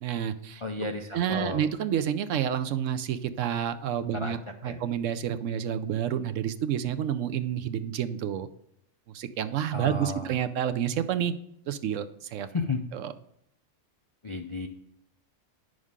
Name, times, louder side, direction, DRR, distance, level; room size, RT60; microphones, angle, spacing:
voice 1, 0.0-0.6 1.1-4.4 4.6-8.5 9.1-11.3 11.7-12.5 12.9-13.1, right 9 dB, 75° right, 10 dB, 1.0 m, -29 dB
voice 2, 0.6-1.7 4.1-4.4 4.6-4.8 9.7-10.3 12.5-12.8 14.2-14.7, left 3 dB, 45° left, 3 dB, 0.4 m, -33 dB
9.5 x 6.3 x 3.6 m, 0.76 s
omnidirectional pair, 1.4 m